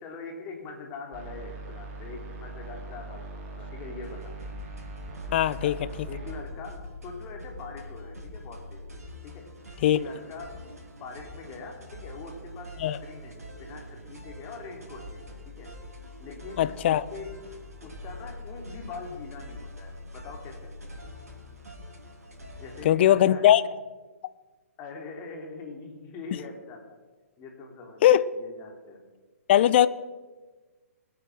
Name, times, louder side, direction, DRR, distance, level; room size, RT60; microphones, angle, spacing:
voice 1, 0.0-3.3 3.6-4.6 5.5-5.8 6.1-8.9 9.2-9.5 9.8-15.7 16.2-17.3 17.8-20.7 22.6-23.6 24.8-27.0 27.4-28.1 28.4-29.1, left 4 dB, 30° left, 2 dB, 2.9 m, -43 dB
sound 1, 1.1-6.4, right 2 dB, 30° right, 3.1 m, -41 dB
sound 2, 4.0-22.9, left 1 dB, 85° right, 3.4 m, -44 dB
voice 2, 5.3-5.7 9.8-10.0 12.8-13.0 16.6-17.0 22.8-23.6 28.0-28.2 29.5-29.9, left 12 dB, 45° left, 17 dB, 0.7 m, -20 dB
21.5 x 8.6 x 6.2 m, 1.3 s
hypercardioid pair, 130°, 8 cm